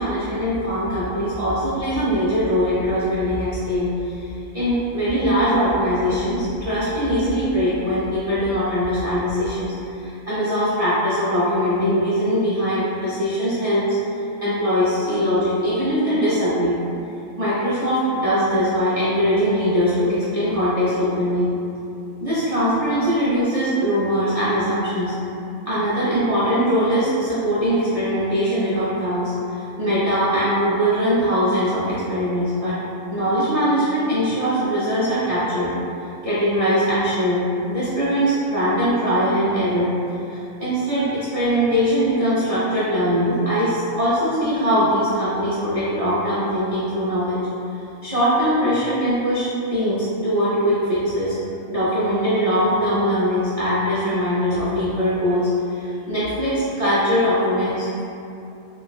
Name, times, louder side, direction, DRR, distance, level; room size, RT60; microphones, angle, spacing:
voice 1, 0.0-16.7 17.4-21.5 22.2-25.1 25.7-32.8 33.1-35.7 36.2-39.9 40.3-47.4 48.0-51.3 51.7-58.0, equal, 75° right, -10 dB, 0.3 m, -21 dB
3.4 x 2.0 x 2.3 m, 2.7 s
omnidirectional pair, 1.3 m